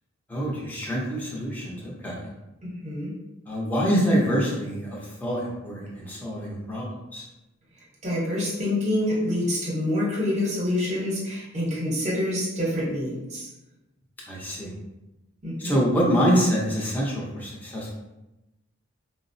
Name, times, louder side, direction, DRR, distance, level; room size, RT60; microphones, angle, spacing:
voice 1, 0.3-2.3 3.5-6.9 7.1-7.2 14.3-14.7 15.6-17.9, equal, 10° left, -5 dB, 0.6 m, -25 dB
voice 2, 2.6-3.1 8.0-13.5 15.4-15.8, left 1 dB, 30° right, -4 dB, 0.8 m, -27 dB
4.4 x 2.0 x 2.5 m, 0.99 s
head